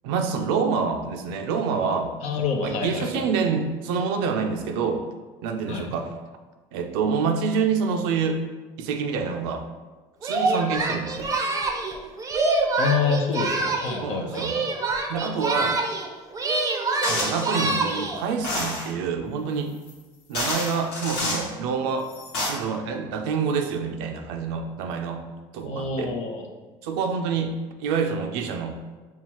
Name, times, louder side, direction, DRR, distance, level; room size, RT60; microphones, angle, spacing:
voice 1, 0.0-2.1 2.6-5.0 5.4-6.2 6.7-8.4 8.8-9.7 10.2-11.3 14.0-14.6 15.1-15.8 17.1-19.7 20.3-22.1 22.5-25.2 25.5-26.1 26.8-28.8, right 5 dB, 85° right, 5 dB, 0.5 m, -27 dB
voice 2, 2.2-3.2 5.7-5.9 12.8-14.7 25.6-26.5, left 5 dB, 60° left, 3 dB, 0.7 m, -27 dB
Singing, 10.2-14.0 14.3-16.1 16.3-18.2, right 3 dB, 25° right, 0.5 m, -25 dB
sound 1, 17.0-17.5 18.4-18.9 19.9-20.0 20.3-21.5 22.1-22.5, left 2 dB, 85° left, 1.2 m, -28 dB
5.6 x 2.4 x 2.9 m, 1.3 s
supercardioid pair, 90°, 13 cm